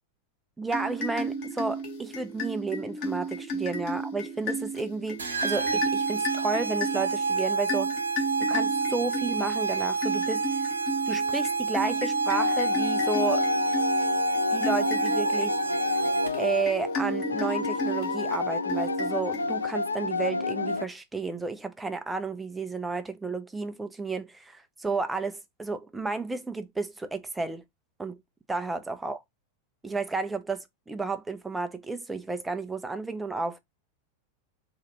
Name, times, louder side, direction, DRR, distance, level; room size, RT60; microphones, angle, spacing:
voice 1, 0.6-8.0 8.4-10.4 11.1-13.4 14.5-15.6 16.4-27.6 28.0-28.2 28.5-29.2 29.8-33.6, right 3 dB, 10° right, 0.5 m, -32 dB
sound 1, 0.7-19.9, right 1 dB, 45° left, 1.1 m, -34 dB
sound 2, 5.2-16.6, right 4 dB, 70° right, 0.7 m, -29 dB
sound 3, 12.4-20.8, left 4 dB, 75° left, 0.3 m, -29 dB
3.0 x 2.4 x 2.9 m
figure-of-eight pair, 90°, 0 cm